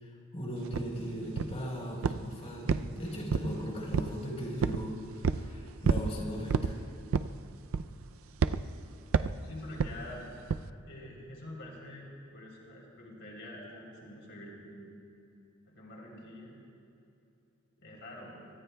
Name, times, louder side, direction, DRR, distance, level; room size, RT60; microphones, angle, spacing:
voice 1, 0.0-6.8, equal, 30° left, -2 dB, 3.9 m, -38 dB
sound 1, 0.7-0.9 1.4-1.7 2.0-2.3 2.7-3.6 3.9-4.2 4.6-4.8 5.2-5.5 5.8-6.1 6.5-6.7 7.1-7.4 7.7-8.0 8.4-8.6 9.1-9.4 9.8-10.0 10.5-10.7, right 5 dB, 75° right, 0.4 m, -28 dB
voice 2, 9.4-10.2 10.9-14.9 15.6-16.5 17.8-18.5, left 1 dB, 60° left, -3 dB, 3.4 m, -46 dB
25.5 x 24.0 x 2.3 m, 2.7 s
head